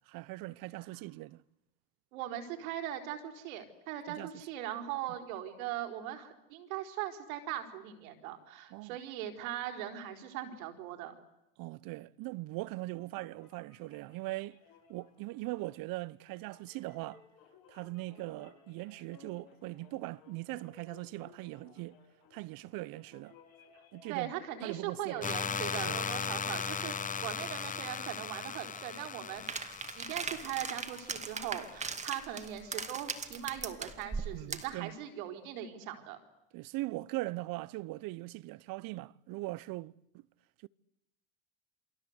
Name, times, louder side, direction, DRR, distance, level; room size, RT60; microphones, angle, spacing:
voice 1, 0.1-1.4 4.1-4.4 8.7-9.0 11.6-14.6 14.9-17.2 17.7-22.0 22.3-23.4 23.9-24.3 24.6-25.3 25.8-26.0 34.3-35.0 36.5-39.9 40.6-40.7, right 20 dB, 55° right, 0.9 m, -40 dB
voice 2, 2.1-11.1 24.1-26.9 27.2-36.2, right 11 dB, 80° right, 4.5 m, -40 dB
sound 1, 12.9-25.0, left 7 dB, 55° left, 6.7 m, -61 dB
sound 2, 25.2-32.0, left 6 dB, 20° left, 1.0 m, -38 dB
sound 3, 29.5-34.8, right 4 dB, 15° right, 2.2 m, -39 dB
28.5 x 23.0 x 8.2 m
supercardioid pair, 105°, 41 cm